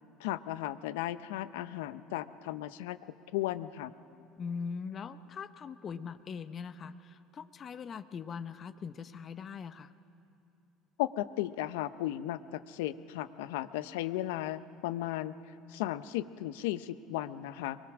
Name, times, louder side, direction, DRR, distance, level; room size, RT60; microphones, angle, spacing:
voice 1, 0.2-3.0 3.3-3.9 11.0-15.4 15.7-17.8, left 14 dB, 80° left, 14 dB, 0.7 m, -35 dB
voice 2, 4.4-9.9, left 6 dB, 40° left, 12 dB, 0.8 m, -41 dB
23.5 x 19.0 x 6.1 m, 2.9 s
supercardioid pair, 85°, 0 cm